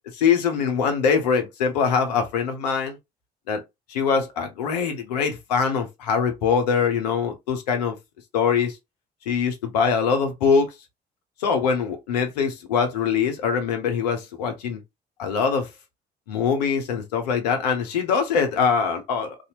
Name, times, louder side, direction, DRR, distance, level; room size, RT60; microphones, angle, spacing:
voice 1, 0.1-3.0 3.5-3.6 3.9-7.9 8.3-8.8 9.3-10.7 11.4-14.8 15.2-15.7 16.3-19.4, left 6 dB, 80° left, 0.6 m, -23 dB
2.7 x 2.4 x 2.8 m
hypercardioid pair, 50°, 21 cm